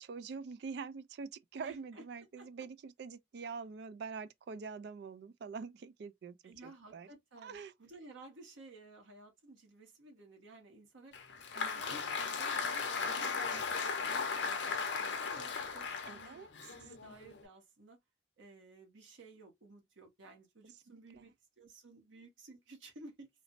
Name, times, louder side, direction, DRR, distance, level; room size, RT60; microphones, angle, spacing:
voice 1, 0.0-7.1 7.4-7.7 11.6-11.9 16.1-16.5 20.9-21.2, right 5 dB, 60° right, 0.3 m, -45 dB
voice 2, 1.6-2.0 2.4-2.5 3.4-3.5 6.4-11.1 11.6-18.0 18.4-23.3, right 2 dB, 85° right, 1.0 m, -55 dB
Applause, 11.1-17.4, left 5 dB, 65° left, 0.6 m, -37 dB
3.1 x 2.0 x 2.5 m
head